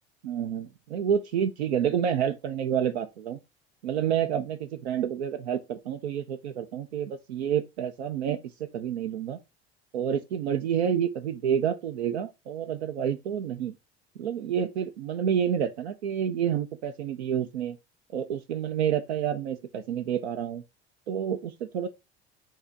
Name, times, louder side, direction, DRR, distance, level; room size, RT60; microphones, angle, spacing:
voice 1, 0.2-3.4 3.8-9.4 9.9-13.7 14.2-17.8 18.1-20.6 21.1-21.9, right 9 dB, 75° right, 0.6 m, -29 dB
5.5 x 2.9 x 3.3 m
figure-of-eight pair, 65°, 32 cm